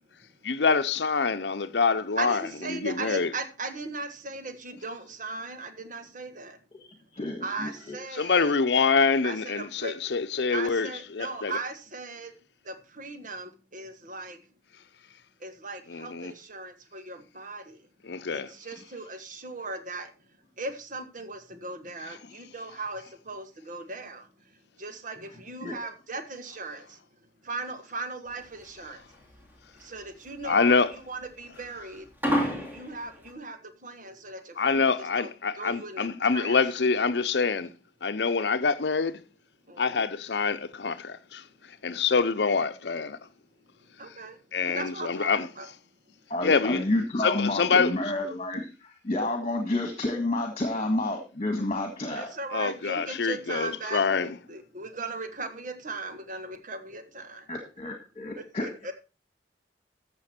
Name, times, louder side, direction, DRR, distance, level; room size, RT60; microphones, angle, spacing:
voice 1, 0.4-2.4 2.7-3.3 8.1-11.6 15.9-16.3 18.0-18.5 30.4-30.9 34.6-37.7 38.0-39.2 39.8-41.4 41.8-43.2 44.5-45.5 46.4-46.8 47.2-47.9 52.5-54.4, left 5 dB, 75° left, 0.7 m, -25 dB
voice 2, 2.2-6.6 7.4-8.5 9.2-9.9 10.5-12.3 12.6-14.4 15.4-17.8 18.3-20.1 20.6-24.3 24.8-27.0 27.4-29.0 29.8-32.1 32.4-36.6 39.7-40.0 44.0-44.4 44.6-45.7 52.1-57.5 58.4-58.9, right 3 dB, 45° right, 1.5 m, -38 dB
voice 3, 6.8-8.0 25.6-25.8 46.3-52.3 57.5-58.7, left 2 dB, 35° left, 1.7 m, -30 dB
sound 1, 28.3-33.3, equal, 10° right, 2.8 m, -31 dB
14.0 x 7.0 x 4.3 m
head